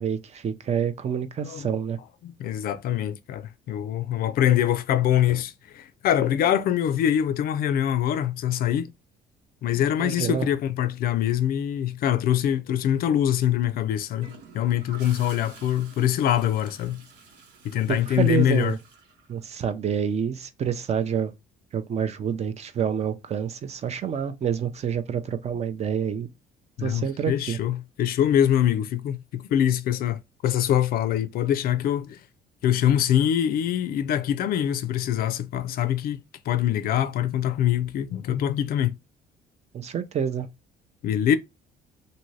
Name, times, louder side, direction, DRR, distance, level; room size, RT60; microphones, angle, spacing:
voice 1, 0.0-2.0 10.0-10.5 17.9-18.8 19.3-21.3 21.7-26.3 26.8-27.6 39.7-40.5, right 8 dB, 40° right, 0.5 m, -27 dB
voice 2, 2.2-8.9 9.6-17.0 17.6-18.7 26.8-32.2 32.6-36.2 36.5-38.9 41.0-41.4, left 10 dB, 60° left, 0.4 m, -24 dB
Gurgling / Toilet flush, 14.2-19.9 21.9-22.2, right 5 dB, 85° right, 0.9 m, -50 dB
2.7 x 2.6 x 3.1 m
cardioid pair, 110°, 17 cm